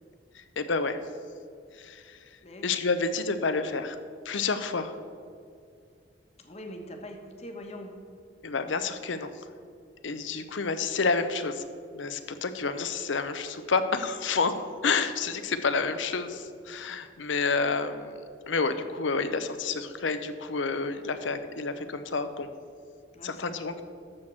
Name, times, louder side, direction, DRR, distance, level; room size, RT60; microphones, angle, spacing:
voice 1, 0.3-1.0 1.7-4.0 4.2-5.0 8.4-9.5 10.0-11.7 11.9-18.2 18.5-22.5 23.2-23.8, left 4 dB, 85° left, 10 dB, 0.7 m, -29 dB
voice 2, 6.4-7.9 23.1-23.4, left 1 dB, 35° left, 3 dB, 1.1 m, -42 dB
13.0 x 4.4 x 7.4 m, 2.3 s
head